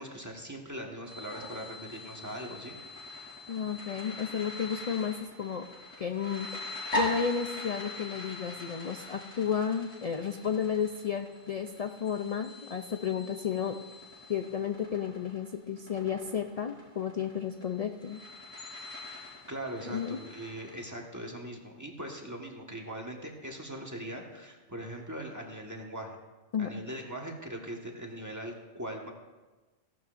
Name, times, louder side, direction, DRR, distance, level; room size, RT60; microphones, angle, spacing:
voice 1, 0.0-2.8 19.2-26.2 26.6-29.1, right 1 dB, 15° right, 0 dB, 1.4 m, -41 dB
sound 1, 1.0-20.8, left 1 dB, 75° left, 5.4 m, -41 dB
voice 2, 3.5-5.7 6.0-6.5 6.9-13.8 14.3-18.2 19.9-20.2 26.5-26.7, left 7 dB, 55° left, 5 dB, 0.4 m, -32 dB
17.0 x 12.5 x 2.6 m, 1.2 s
omnidirectional pair, 1.3 m